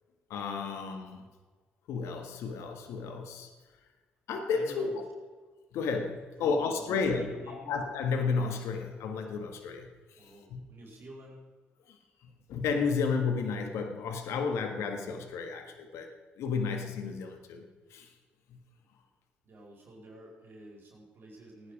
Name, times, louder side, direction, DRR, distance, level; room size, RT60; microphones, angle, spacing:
voice 1, 0.3-1.2 1.9-3.5 4.3-5.0 5.7-10.6 11.9-12.0 12.5-16.1 16.4-17.6 17.9-18.1 18.5-18.6, left 5 dB, 75° left, 5 dB, 1.6 m, -32 dB
voice 2, 4.5-5.0 6.4-7.7 10.2-11.4 19.4-21.7, right 1 dB, 50° right, -1 dB, 4.7 m, -49 dB
17.0 x 9.8 x 5.0 m, 1.4 s
hypercardioid pair, 55°, 5 cm